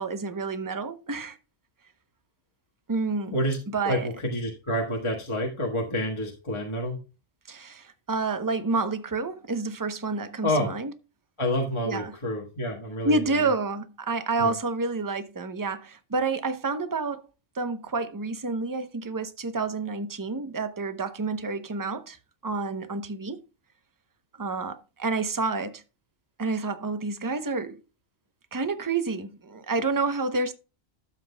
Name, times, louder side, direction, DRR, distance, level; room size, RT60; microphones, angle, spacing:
voice 1, 0.0-1.4 2.9-3.4 3.7-4.1 7.5-10.9 11.8-12.1 13.0-17.2 17.5-22.2 22.4-23.4 24.4-25.8 26.4-27.8 28.5-30.5, right 3 dB, 20° right, 0.6 m, -29 dB
voice 2, 3.8-7.0 10.4-10.7 11.4-13.4 14.4-14.5, left 1 dB, 25° left, 1.5 m, -28 dB
12.5 x 7.5 x 2.2 m
omnidirectional pair, 1.2 m